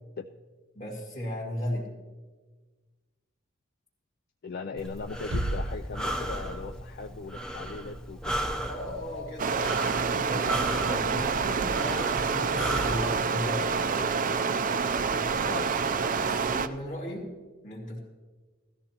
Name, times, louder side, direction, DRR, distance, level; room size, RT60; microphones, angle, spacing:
voice 1, 0.7-1.9 8.7-14.2 16.2-17.3 17.6-18.0, equal, 35° left, -5 dB, 2.1 m, -36 dB
voice 2, 4.4-8.4 15.4-15.7, left 4 dB, 50° left, 7 dB, 0.4 m, -39 dB
Breathing, 4.8-13.1, right 1 dB, 5° left, 0.7 m, -35 dB
sound 1, 5.3-6.9, right 1 dB, 85° right, 1.0 m, -33 dB
Stream, 9.4-16.7, right 5 dB, 40° right, 0.5 m, -27 dB
17.0 x 13.5 x 2.9 m, 1.4 s
head